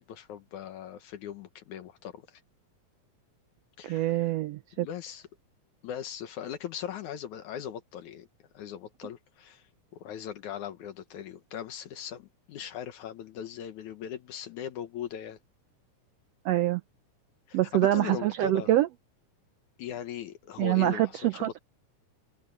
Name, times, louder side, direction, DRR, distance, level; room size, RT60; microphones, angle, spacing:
voice 1, 0.0-2.4 3.8-4.3 4.8-5.2 5.8-8.3 8.5-9.6 10.0-15.4 17.5-18.7 19.8-21.6, left 9 dB, 75° left, 2.5 m, -39 dB
voice 2, 3.8-4.9 16.4-16.8 17.5-18.9 20.6-21.6, right 15 dB, 80° right, 1.4 m, -25 dB
open air
omnidirectional pair, 3.5 m